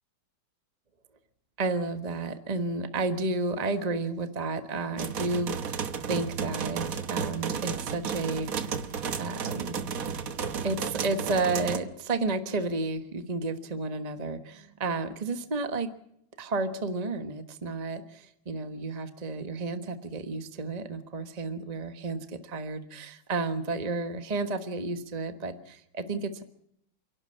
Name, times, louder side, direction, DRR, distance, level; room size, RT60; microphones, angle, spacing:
voice 1, 1.6-8.7 9.2-9.8 10.6-15.9 16.4-26.4, right 3 dB, 25° right, 9 dB, 1.2 m, -32 dB
sound 1, 5.0-11.8, right 6 dB, 50° right, 1.4 m, -33 dB
29.0 x 11.5 x 8.5 m, 0.73 s
omnidirectional pair, 2.2 m